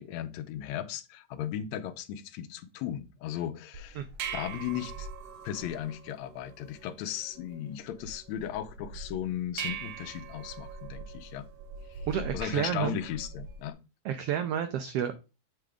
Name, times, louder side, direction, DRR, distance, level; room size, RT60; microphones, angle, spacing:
voice 1, 0.0-4.0 4.3-5.1 5.4-11.5 11.9-12.1 12.3-13.8, left 10 dB, 75° left, 1.9 m, -36 dB
sound 1, 3.7-13.7, right 5 dB, 70° right, 1.7 m, -42 dB
voice 2, 12.1-13.0 14.0-15.2, right 9 dB, 85° right, 1.3 m, -30 dB
7.7 x 3.4 x 4.9 m
omnidirectional pair, 3.4 m